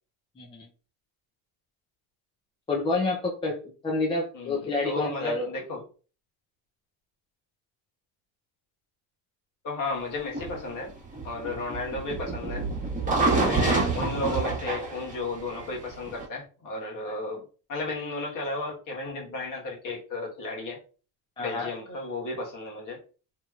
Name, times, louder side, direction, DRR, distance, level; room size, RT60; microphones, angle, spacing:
voice 1, 0.4-0.7 2.7-5.5 17.1-17.2 21.4-21.7, left 3 dB, 10° left, -3 dB, 0.5 m, -29 dB
voice 2, 4.3-5.8 9.6-10.9 11.2-12.7 13.4-17.4 17.7-20.8 21.4-23.0, left 2 dB, 40° left, -1 dB, 1.4 m, -33 dB
sound 1, 10.3-16.2, right 3 dB, 15° right, 1.3 m, -27 dB
3.0 x 2.8 x 2.4 m, 0.37 s
supercardioid pair, 115°, 46 cm